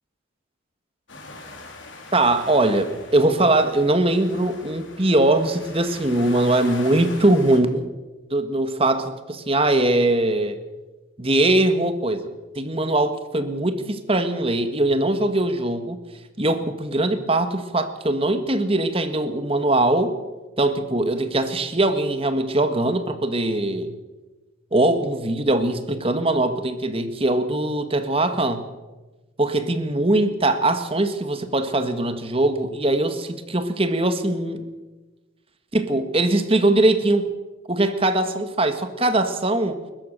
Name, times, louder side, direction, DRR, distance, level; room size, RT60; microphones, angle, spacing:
sound 1, 1.1-7.6, left 2 dB, 70° left, 4.5 m, -41 dB
voice 1, 2.1-7.9 8.3-10.6 11.2-12.2 12.5-16.0 16.4-20.2 20.6-23.9 24.7-28.6 29.4-34.7 35.7-37.3 37.7-39.8, right 2 dB, 30° right, 9 dB, 1.7 m, -21 dB
30.0 x 14.0 x 6.8 m, 1.2 s
head